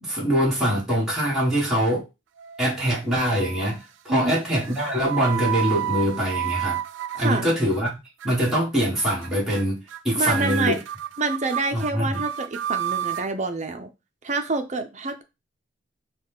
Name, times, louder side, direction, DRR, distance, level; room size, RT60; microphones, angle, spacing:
voice 1, 0.0-2.1 2.6-6.8 7.1-8.0 8.2-10.8 11.7-12.2, equal, ahead, -7 dB, 1.6 m, -23 dB
sound 1, 2.4-3.0 3.3-3.8 4.6-7.9 8.2-8.6 9.0-9.3 9.5-10.0 10.3-13.3, right 11 dB, 85° right, 0.4 m, -30 dB
voice 2, 10.2-10.8 11.2-13.9 14.2-15.2, right 3 dB, 40° right, 7 dB, 0.6 m, -27 dB
5.2 x 2.3 x 3.6 m, 0.25 s
head